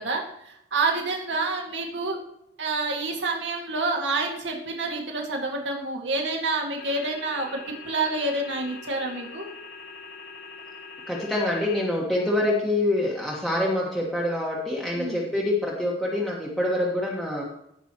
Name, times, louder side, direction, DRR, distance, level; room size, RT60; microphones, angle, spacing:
voice 1, 0.0-2.2 2.6-7.6 7.9-9.5 14.9-15.2, right 3 dB, 85° right, 1 dB, 1.9 m, -28 dB
sound 1, 6.8-11.8, left 4 dB, 55° left, 1.7 m, -43 dB
voice 2, 11.1-17.4, left 1 dB, ahead, -4 dB, 1.5 m, -26 dB
17.0 x 6.0 x 3.0 m, 0.76 s
head